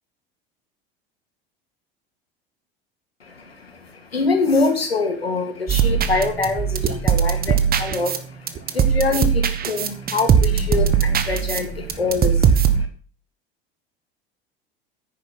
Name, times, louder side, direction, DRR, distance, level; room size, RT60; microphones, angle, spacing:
voice 1, 3.2-12.9, left 3 dB, 85° left, 6 dB, 2.3 m, -25 dB
sound 1, 5.7-12.8, right 7 dB, 30° right, 1.5 m, -20 dB
10.0 x 9.7 x 4.5 m, 0.39 s
figure-of-eight pair, 75°, 30 cm